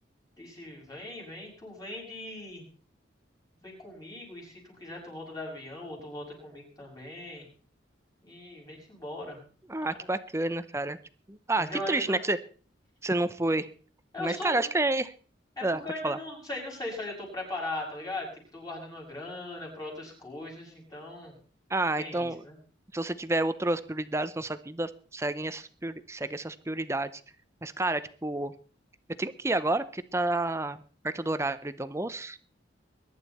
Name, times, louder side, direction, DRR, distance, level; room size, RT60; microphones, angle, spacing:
voice 1, 0.4-2.7 3.6-7.4 8.2-9.4 9.8-10.1 11.6-12.2 14.1-14.7 15.6-18.3 18.5-21.3 22.0-22.6, left 1 dB, 20° left, -1 dB, 6.8 m, -39 dB
voice 2, 9.7-11.0 11.3-12.4 13.0-13.7 14.2-15.1 15.6-16.2 21.7-22.4 22.9-27.1 27.6-28.5 29.2-32.5, right 2 dB, 15° right, 12 dB, 0.6 m, -30 dB
22.0 x 11.0 x 4.2 m, 0.42 s
head